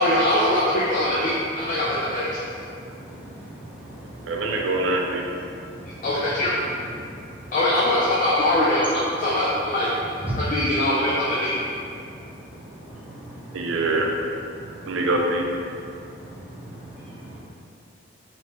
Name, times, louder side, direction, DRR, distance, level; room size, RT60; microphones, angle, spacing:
voice 1, 0.0-2.3 6.0-6.5 7.5-8.9 9.2-9.9 10.5-11.5, left 1 dB, 45° left, -8 dB, 0.5 m, -22 dB
voice 2, 1.4-4.7 5.3-7.5 9.1-9.2 10.2-10.5 11.4-11.6 11.9-14.1 14.5-15.0 15.7-17.4, right 1 dB, 10° right, -8 dB, 0.7 m, -39 dB
voice 3, 4.3-5.2 13.5-14.1 14.8-15.5, right 2 dB, 80° right, 1 dB, 0.4 m, -24 dB
3.3 x 2.9 x 2.9 m, 2.5 s
head